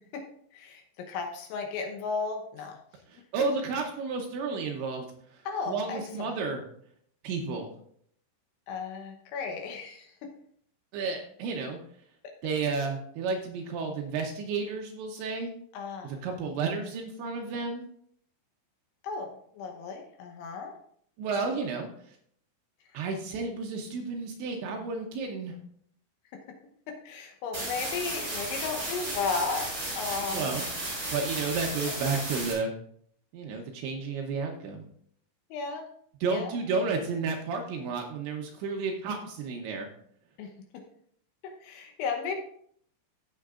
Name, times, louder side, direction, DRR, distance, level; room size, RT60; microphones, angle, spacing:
voice 1, 0.5-2.8 5.5-6.4 8.7-10.3 15.7-16.2 19.0-20.7 26.9-30.6 35.5-35.8 36.3-36.5 40.4-40.5 41.4-42.4, left 5 dB, 75° left, 4 dB, 3.0 m, -35 dB
voice 2, 3.1-5.1 5.3-6.6 7.2-7.7 10.9-11.8 12.4-15.5 16.0-17.9 21.2-22.2 22.9-25.6 30.3-30.7 31.1-32.7 33.3-34.9 36.2-39.9, right 4 dB, 75° right, 2 dB, 2.8 m, -32 dB
sound 1, 27.5-32.5, right 1 dB, 15° right, 3.6 m, -34 dB
15.0 x 7.0 x 2.5 m, 0.65 s
omnidirectional pair, 6.0 m